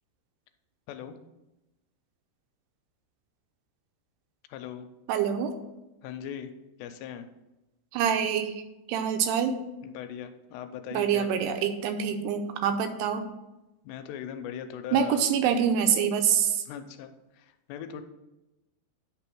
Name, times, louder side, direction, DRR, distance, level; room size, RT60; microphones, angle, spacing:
voice 1, 4.5-4.9 6.0-6.5 6.8-7.3 9.8-11.7 13.8-15.2 16.7-18.0, left 9 dB, 85° left, 8 dB, 2.8 m, -40 dB
voice 2, 5.1-5.5 7.9-8.6 8.9-9.6 10.9-13.3 14.9-16.6, right 8 dB, 80° right, 7 dB, 2.7 m, -26 dB
9.9 x 3.5 x 6.0 m, 0.99 s
omnidirectional pair, 4.8 m